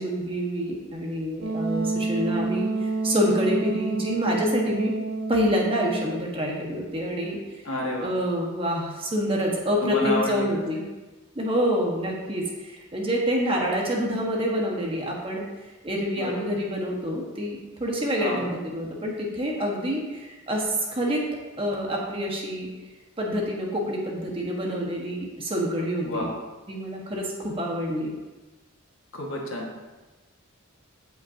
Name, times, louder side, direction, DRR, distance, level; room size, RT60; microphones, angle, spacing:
voice 1, 0.0-4.9 5.3-7.6 8.0-10.8 11.3-15.4 15.8-21.2 21.6-22.7 23.2-26.3 26.7-28.1, equal, 25° right, -1 dB, 1.4 m, -27 dB
Wind instrument woodwind instrument, 1.4-6.2, right 3 dB, 85° right, 1.0 m, -28 dB
voice 2, 7.6-8.1 9.8-10.5 16.2-16.5 18.2-18.5 26.0-26.3 29.1-29.7, left 1 dB, 65° left, -2 dB, 1.8 m, -29 dB
16.0 x 5.6 x 2.8 m, 1.2 s
head